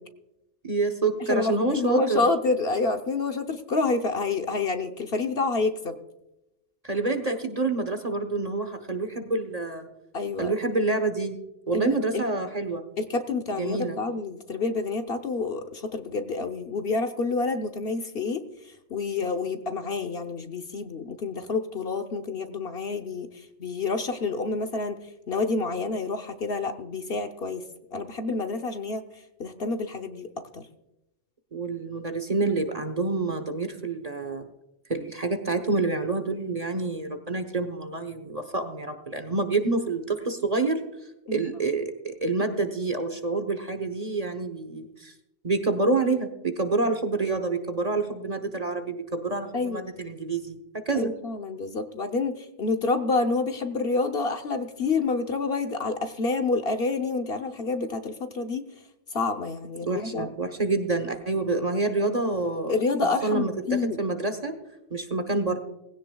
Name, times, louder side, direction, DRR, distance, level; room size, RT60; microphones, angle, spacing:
voice 1, 0.6-2.3 6.8-9.9 10.4-11.4 11.7-12.8 13.6-14.0 31.5-34.5 34.9-40.8 41.3-45.1 45.4-51.1 59.8-62.7 63.2-64.5 64.9-65.6, right 3 dB, 35° right, 6 dB, 1.0 m, -27 dB
voice 2, 1.3-5.9 10.1-10.5 11.7-12.2 13.0-25.0 25.3-27.6 27.9-29.0 29.4-30.3 30.5-30.7 41.3-41.5 49.5-49.9 50.9-58.7 59.1-60.3 62.7-64.0, left 3 dB, 50° left, 6 dB, 1.0 m, -28 dB
19.0 x 16.5 x 2.3 m, 0.91 s
omnidirectional pair, 1.3 m